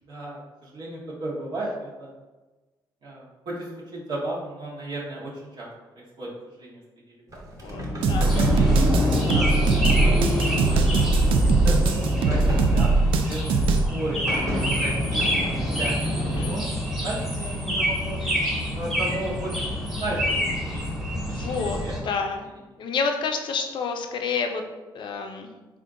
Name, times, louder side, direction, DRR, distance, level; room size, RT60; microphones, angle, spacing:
voice 1, 0.1-2.1 3.0-5.7 6.2-6.3 6.5-6.8 8.2-8.9 9.4-11.1 11.6-12.9 13.2-14.2 14.8-15.5 15.8-18.2 18.8-21.1 21.7-21.9, right 1 dB, 65° right, -6 dB, 1.1 m, -35 dB
Sliding door, 7.3-16.5, equal, 40° right, 1.0 m, -27 dB
voice 2, 7.6-8.4 9.5-9.8 16.2-16.6 18.2-18.3 21.3-22.5 22.8-24.6 24.9-25.5, left 5 dB, 65° left, 5 dB, 0.5 m, -29 dB
sound 1, 8.0-13.9, right 3 dB, 85° right, 0.3 m, -21 dB
sound 2, 8.2-22.0, equal, ahead, 1.1 m, -28 dB
3.7 x 2.5 x 3.6 m, 1.2 s
cardioid pair, 85°, 9 cm